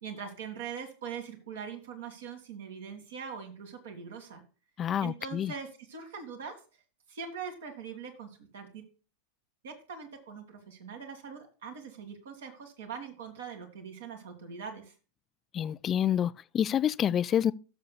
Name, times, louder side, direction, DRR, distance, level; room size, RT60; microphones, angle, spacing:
voice 1, 0.0-4.4 5.0-6.6 7.1-8.8 9.6-14.9, right 6 dB, 60° right, 1.9 m, -42 dB
voice 2, 4.8-5.5 15.5-17.5, left 9 dB, 25° left, 0.3 m, -28 dB
16.5 x 6.8 x 2.3 m
figure-of-eight pair, 90°, 0 cm